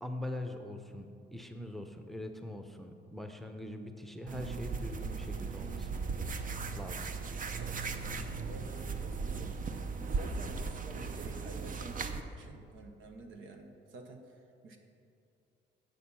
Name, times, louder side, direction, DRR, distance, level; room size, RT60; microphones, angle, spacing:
voice 1, 0.0-5.9 6.8-7.1, left 1 dB, ahead, 5 dB, 0.7 m, -42 dB
sound 1, 4.3-12.2, right 4 dB, 45° right, 0.6 m, -37 dB
voice 2, 8.4-9.6 9.9-14.8, right 2 dB, 80° right, 4 dB, 1.1 m, -50 dB
8.4 x 6.5 x 5.6 m, 2.5 s
cardioid pair, 90°, 20 cm